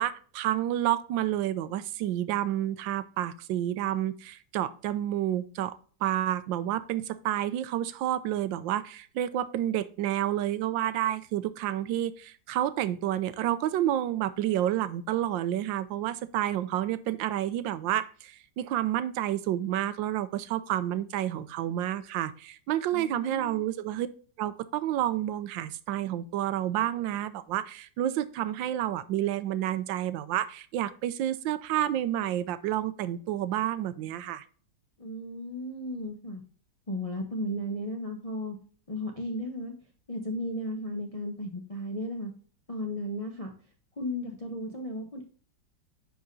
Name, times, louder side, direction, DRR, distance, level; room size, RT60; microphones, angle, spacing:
voice 1, 0.0-24.1 24.4-34.4, right 12 dB, 85° right, 14 dB, 1.3 m, -30 dB
voice 2, 22.9-23.6 35.0-36.4 36.9-38.6 38.9-39.7 40.1-42.3 42.7-43.5 44.0-45.3, left 1 dB, 30° left, 2 dB, 0.6 m, -35 dB
10.5 x 4.8 x 2.6 m, 0.43 s
omnidirectional pair, 2.0 m